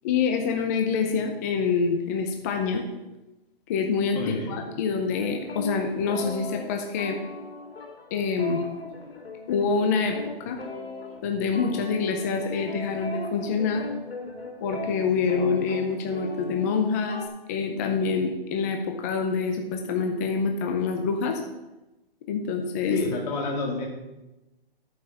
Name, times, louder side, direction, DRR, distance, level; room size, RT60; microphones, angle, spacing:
voice 1, 0.0-2.8 3.7-7.2 8.1-8.6 9.5-10.2 10.5-10.6 11.2-13.9 14.6-17.2 17.5-21.4 22.3-23.0, left 5 dB, 15° left, 3 dB, 0.5 m, -26 dB
voice 2, 4.1-4.5 22.9-23.9, left 3 dB, 40° left, -1 dB, 1.8 m, -28 dB
sound 1, 5.1-17.3, left 3 dB, 90° left, 4.2 m, -38 dB
9.8 x 5.6 x 6.8 m, 1.0 s
hypercardioid pair, 155°, 30 cm